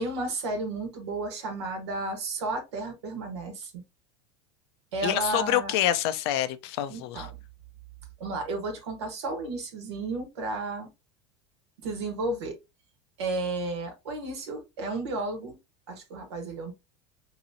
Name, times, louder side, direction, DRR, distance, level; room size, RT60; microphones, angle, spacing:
voice 1, 0.0-3.8 4.9-5.7 6.9-7.4 8.2-10.9 11.8-12.6 13.2-15.6 15.9-16.7, right 2 dB, 90° right, 1.3 m, -33 dB
voice 2, 5.0-7.3, left 12 dB, 75° left, 0.5 m, -27 dB
3.9 x 2.9 x 2.6 m
supercardioid pair, 115°, 14 cm